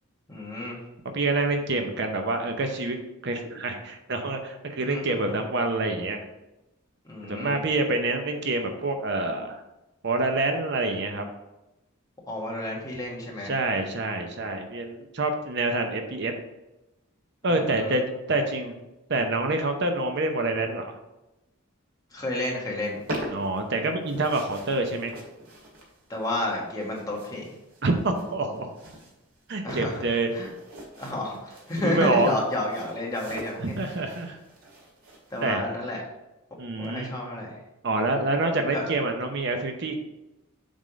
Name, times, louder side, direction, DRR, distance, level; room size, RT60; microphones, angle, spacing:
voice 1, 0.3-0.8 4.8-5.2 7.0-7.6 12.3-13.5 17.5-18.0 22.1-23.0 26.1-27.5 29.6-30.0 30.3-30.5 31.0-33.8 35.3-36.0 36.8-37.5 38.7-38.8, left 1 dB, 15° left, -3 dB, 1.5 m, -31 dB
voice 2, 1.1-6.2 7.3-9.6 10.0-11.3 13.4-16.3 17.4-18.7 19.1-21.0 23.3-25.2 27.8-28.7 29.5-30.3 31.8-32.4 33.6-34.4 35.4-35.6 36.6-37.1 37.8-39.9, right 2 dB, 55° right, 5 dB, 0.7 m, -27 dB
sound 1, 22.7-35.5, right 1 dB, 80° right, 2.1 m, -43 dB
7.4 x 3.6 x 5.0 m, 0.96 s
head